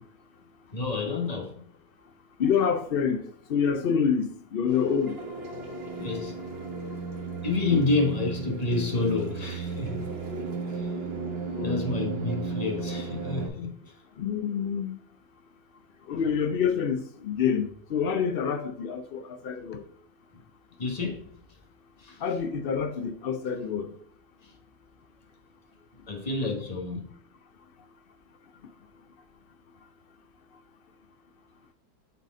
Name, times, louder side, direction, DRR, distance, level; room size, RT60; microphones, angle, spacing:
voice 1, 0.7-1.6 6.0-6.4 7.4-10.1 10.7-10.9 11.6-13.9 20.8-21.3 22.0-22.2 24.4-24.5 26.1-27.1, left 3 dB, 25° left, 1.1 m, -29 dB
voice 2, 2.4-3.2 3.5-5.2 7.7-7.8 11.5-11.8 14.2-14.9 16.1-19.8 22.2-23.9, left 7 dB, 85° left, 0.5 m, -27 dB
sound 1, 4.7-13.5, right 4 dB, 40° right, 1.4 m, -34 dB
8.2 x 4.1 x 3.6 m
omnidirectional pair, 1.7 m